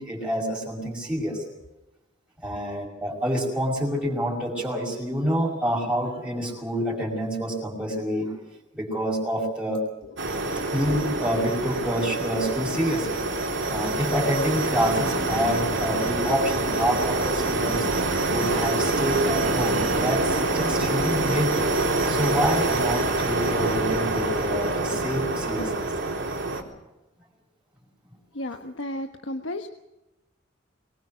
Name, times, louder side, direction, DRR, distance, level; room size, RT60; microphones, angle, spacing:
voice 1, 0.0-1.4 2.4-8.4 8.7-9.8 10.6-13.3 13.7-17.9 18.3-21.7 22.1-25.8, equal, 5° right, -4 dB, 5.5 m, -27 dB
sound 1, 10.2-26.6, right 2 dB, 70° right, 3.9 m, -26 dB
voice 2, 28.3-29.7, left 1 dB, 70° left, 5 dB, 1.3 m, -33 dB
23.5 x 21.0 x 6.4 m, 0.99 s
head